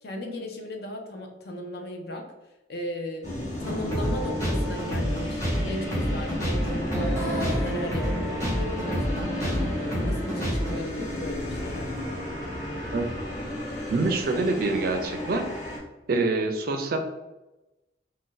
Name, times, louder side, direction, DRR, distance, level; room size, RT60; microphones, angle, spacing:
voice 1, 0.0-2.3 2.7-3.3 3.6-7.2 7.6-11.9, left 1 dB, 55° left, 3 dB, 0.5 m, -36 dB
sound 1, 3.2-15.8, left 1 dB, 40° left, 1.1 m, -34 dB
sound 2, 3.6-10.7, equal, 15° left, 1.0 m, -28 dB
voice 2, 13.9-15.4 16.1-17.0, right 3 dB, 50° right, 5 dB, 0.3 m, -25 dB
2.5 x 2.2 x 3.7 m, 1.0 s
head